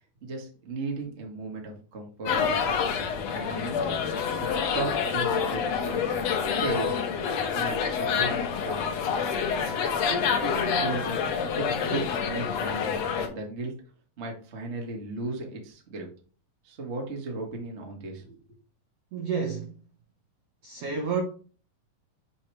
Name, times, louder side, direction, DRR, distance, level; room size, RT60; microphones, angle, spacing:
voice 1, 0.2-2.4 3.3-3.8 4.4-6.2 6.6-7.0 7.5-9.1 10.1-13.0 13.3-13.7 14.2-16.1 16.6-18.4, right 3 dB, 55° right, 0.7 m, -36 dB
sound 1, 2.3-13.3, left 6 dB, 70° left, 1.7 m, -27 dB
voice 2, 19.1-19.8 20.6-21.2, right 5 dB, 75° right, 1.4 m, -30 dB
7.7 x 3.1 x 4.7 m
omnidirectional pair, 4.0 m